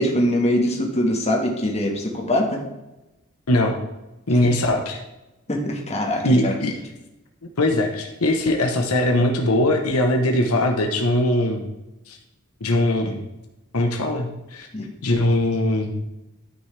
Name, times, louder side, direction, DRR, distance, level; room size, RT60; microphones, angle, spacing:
voice 1, 0.0-2.6 4.4-4.5 5.5-6.5 14.7-14.9, left 1 dB, 30° left, 0 dB, 1.6 m, -23 dB
voice 2, 4.3-5.0 6.2-6.7 7.6-11.7 12.1-12.2 12.6-13.2 13.7-14.7 15.0-16.0, left 1 dB, 75° left, 2 dB, 1.0 m, -21 dB
12.5 x 6.2 x 3.3 m, 0.99 s
head